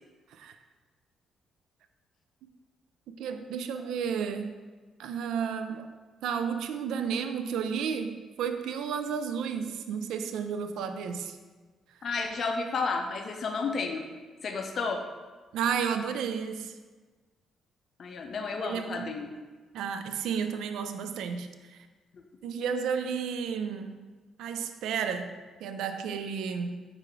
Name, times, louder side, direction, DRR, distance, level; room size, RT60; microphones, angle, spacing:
voice 1, 3.2-4.6 5.0-5.9 6.2-11.4 15.5-16.8 18.6-19.1 19.7-21.9 22.4-24.1 24.4-26.8, right 7 dB, 80° right, 8 dB, 0.3 m, -32 dB
voice 2, 12.0-14.0 14.4-15.0 18.0-19.3 22.1-22.2, left 4 dB, 55° left, 4 dB, 0.5 m, -32 dB
4.7 x 2.5 x 4.5 m, 1.3 s
cardioid pair, 90°, 0 cm